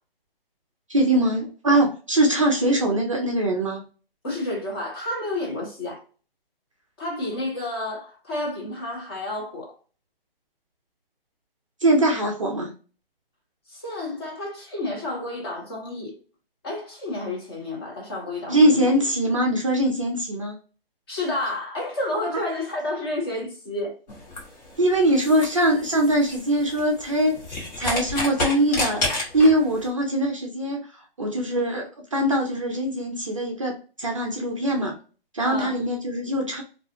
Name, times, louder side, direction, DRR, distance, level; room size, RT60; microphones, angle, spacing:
voice 1, 0.9-3.8 11.8-12.7 18.5-20.6 22.3-22.4 24.8-27.4 27.8-29.0 29.3-30.9 31.2-34.9 35.3-36.6, right 1 dB, 35° right, 0.4 m, -22 dB
voice 2, 4.2-6.0 7.0-9.7 13.7-16.1 16.6-18.9 21.1-24.0 35.4-35.7, left 2 dB, 25° left, 0.8 m, -30 dB
sound 1, 24.1-29.9, left 2 dB, 45° left, 1.2 m, -31 dB
2.4 x 2.2 x 2.7 m
hypercardioid pair, 160°, 29 cm